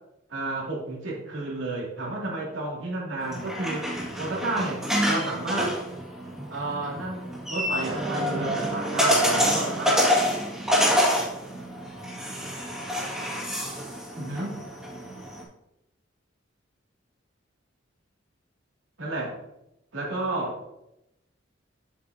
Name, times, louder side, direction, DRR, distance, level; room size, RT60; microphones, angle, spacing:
voice 1, 0.3-3.9 4.2-4.8 5.1-5.7 6.5-9.9 14.1-14.5 19.0-19.4 19.9-20.6, right 2 dB, 80° right, -3 dB, 2.3 m, -31 dB
sound 1, 3.2-15.4, equal, 5° right, 1.8 m, -27 dB
7.5 x 6.6 x 2.7 m, 0.86 s
head